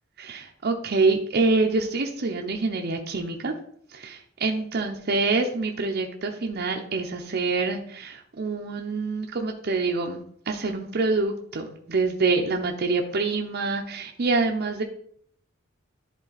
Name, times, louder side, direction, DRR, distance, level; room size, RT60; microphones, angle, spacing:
voice 1, 0.2-3.5 3.9-14.8, right 3 dB, 50° right, 2 dB, 0.6 m, -26 dB
10.5 x 3.9 x 4.0 m, 0.64 s
head